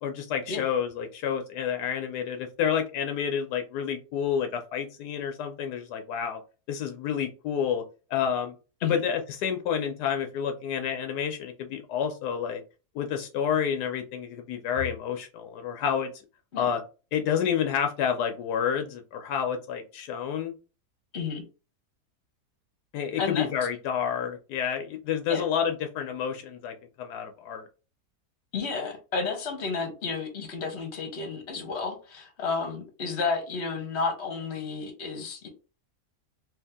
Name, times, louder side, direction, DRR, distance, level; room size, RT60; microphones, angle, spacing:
voice 1, 0.0-6.4 6.7-7.8 8.1-8.5 8.8-12.6 12.9-16.1 16.6-16.8 17.1-20.5 22.9-27.7, left 8 dB, 80° left, 5 dB, 1.2 m, -29 dB
voice 2, 23.2-23.5 25.3-25.4 28.5-35.5, left 4 dB, 45° left, 3 dB, 1.2 m, -31 dB
3.2 x 2.7 x 3.5 m, 0.33 s
omnidirectional pair, 1.7 m